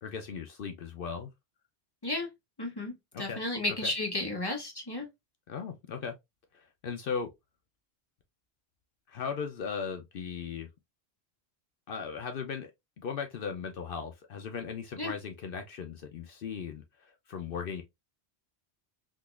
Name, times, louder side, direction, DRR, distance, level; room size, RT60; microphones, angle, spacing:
voice 1, 0.0-1.3 3.1-3.4 3.8-3.9 5.5-6.1 6.5-7.3 9.1-10.7 11.9-12.7 13.0-17.8, left 6 dB, 65° left, 0.7 m, -37 dB
voice 2, 2.6-5.1 15.0-15.1, left 2 dB, 25° left, 1.0 m, -33 dB
3.8 x 2.8 x 2.4 m
omnidirectional pair, 1.1 m